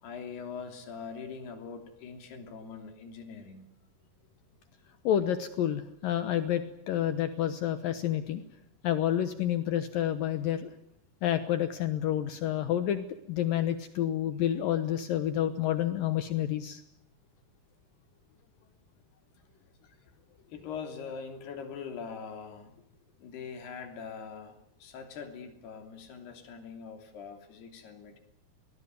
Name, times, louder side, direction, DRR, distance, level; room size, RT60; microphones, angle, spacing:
voice 1, 0.0-3.7 20.5-22.8 23.2-28.2, left 6 dB, 85° left, 6 dB, 5.1 m, -42 dB
voice 2, 5.0-8.4 8.8-10.7 11.2-16.8, left 11 dB, 70° left, 10 dB, 2.6 m, -29 dB
24.0 x 19.5 x 9.6 m, 0.76 s
omnidirectional pair, 4.5 m